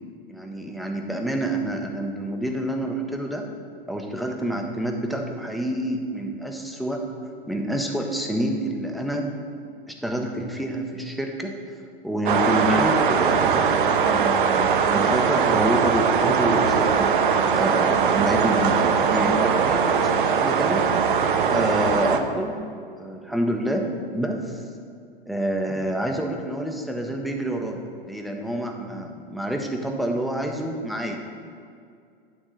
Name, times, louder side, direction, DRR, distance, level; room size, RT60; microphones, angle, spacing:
voice 1, 0.3-3.5 3.9-7.0 7.5-9.3 9.9-17.1 17.5-20.9 21.5-22.6 23.0-23.9 24.1-24.6 25.3-31.2, right 1 dB, ahead, 2 dB, 0.4 m, -28 dB
sound 1, 12.3-22.2, right 6 dB, 60° right, 0.6 m, -21 dB
9.1 x 3.5 x 6.2 m, 2.3 s
figure-of-eight pair, 105°, 29 cm